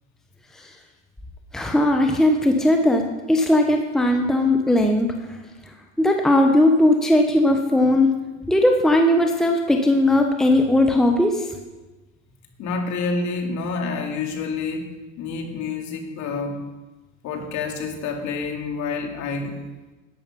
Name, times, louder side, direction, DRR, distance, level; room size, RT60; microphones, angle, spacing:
voice 1, 1.5-5.1 6.0-8.1 8.5-11.5, left 1 dB, ahead, 3 dB, 1.0 m, -18 dB
voice 2, 12.6-14.9 15.2-16.6 17.2-19.6, left 4 dB, 50° left, 3 dB, 2.6 m, -28 dB
11.5 x 8.9 x 5.5 m, 1.2 s
hypercardioid pair, 95°, 37 cm